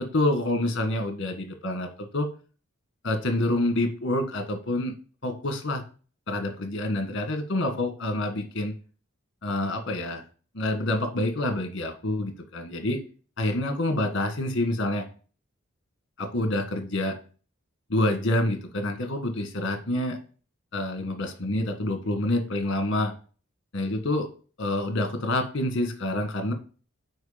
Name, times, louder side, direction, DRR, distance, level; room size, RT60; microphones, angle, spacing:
voice 1, 0.0-1.9 2.1-2.3 3.0-4.9 5.2-5.8 6.3-8.7 9.4-10.2 10.5-13.0 13.4-15.1 16.2-17.2 17.9-20.2 20.7-23.1 23.7-24.3 24.6-26.5, left 1 dB, 55° left, 5 dB, 1.7 m, -27 dB
6.4 x 4.8 x 5.1 m, 0.38 s
head